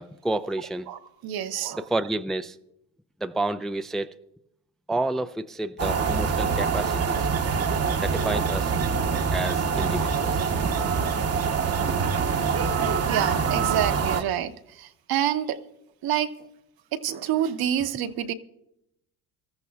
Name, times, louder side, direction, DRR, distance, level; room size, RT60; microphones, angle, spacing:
voice 1, 0.0-0.9 1.7-2.6 3.2-4.1 4.9-7.3 8.0-8.7 9.3-10.5, right 2 dB, ahead, 0.4 m, -30 dB
voice 2, 0.9-1.9 12.8-15.6 16.0-16.5 16.9-18.3, right 10 dB, 55° right, 1.1 m, -28 dB
sound 1, 5.8-14.2, right 5 dB, 35° right, 1.0 m, -25 dB
24.0 x 14.0 x 2.4 m
supercardioid pair, 85°, 43 cm